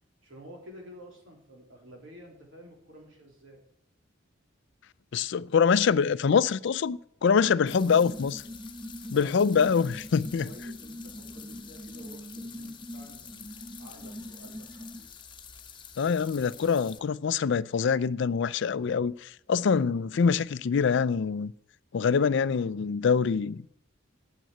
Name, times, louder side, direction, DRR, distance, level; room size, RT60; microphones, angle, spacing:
voice 1, 0.2-3.6 7.8-8.2 9.1-9.8 10.4-15.2, equal, 75° right, 3.7 m, -50 dB
voice 2, 5.1-8.4 9.1-10.5 16.0-21.5 21.9-23.6, left 6 dB, 65° left, 0.4 m, -25 dB
sound 1, 7.7-17.0, left 7 dB, 25° left, 1.1 m, -48 dB
sound 2, 7.7-15.0, equal, 15° right, 0.7 m, -43 dB
9.3 x 7.5 x 8.8 m
head